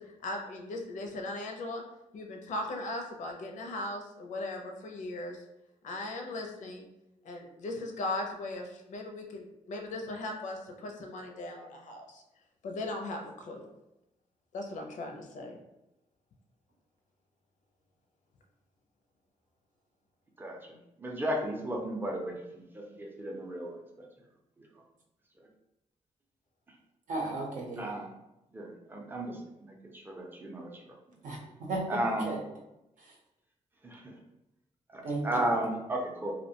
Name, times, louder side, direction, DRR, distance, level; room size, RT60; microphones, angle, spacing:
voice 1, 0.0-1.8 2.1-5.4 5.8-6.9 7.2-12.2 12.6-13.7 14.5-15.6, left 2 dB, 75° left, 3 dB, 0.5 m, -38 dB
voice 2, 21.0-24.1 27.8-28.0 28.5-29.7 30.1-30.7 31.9-32.3 33.8-34.1 34.9-36.3, right 1 dB, 15° right, 0 dB, 0.4 m, -34 dB
voice 3, 27.1-27.9 31.2-31.9 32.3-32.4 35.0-35.5, right 2 dB, 80° right, -1 dB, 0.7 m, -34 dB
2.5 x 2.1 x 2.8 m, 0.90 s
wide cardioid pair, 130°, 13 cm